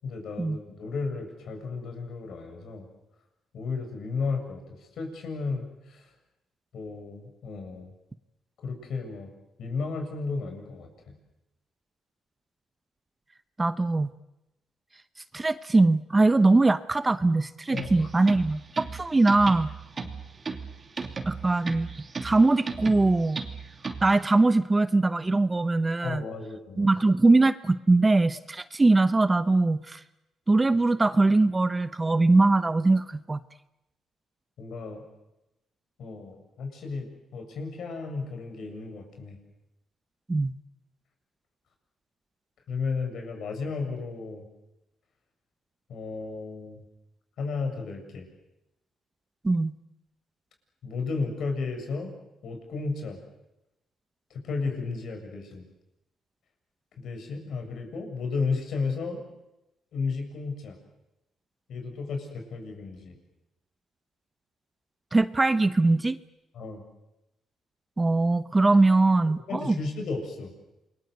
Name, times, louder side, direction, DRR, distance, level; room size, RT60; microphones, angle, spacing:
voice 1, 0.0-2.8 3.5-4.6 5.0-6.1 6.7-7.9 8.6-9.3 9.6-11.1 17.7-18.1 20.0-20.1 26.0-27.1 34.6-35.0 36.0-39.4 42.7-44.5 45.9-46.8 47.4-48.3 50.8-52.1 52.4-53.2 54.3-55.6 57.0-59.2 59.9-60.8 61.7-63.2 66.5-66.8 69.5-70.5, left 4 dB, 65° left, 5 dB, 7.4 m, -33 dB
voice 2, 13.6-14.1 15.3-19.7 21.3-21.9 22.2-23.4 24.0-26.2 26.8-30.0 30.5-33.4 40.3-40.5 49.4-49.7 65.1-66.2 68.0-69.8, right 2 dB, 20° right, 13 dB, 0.9 m, -22 dB
sound 1, 17.7-24.2, right 4 dB, 35° right, 2.9 m, -36 dB
28.5 x 22.5 x 8.1 m, 0.94 s
cardioid pair, 90°, 0 cm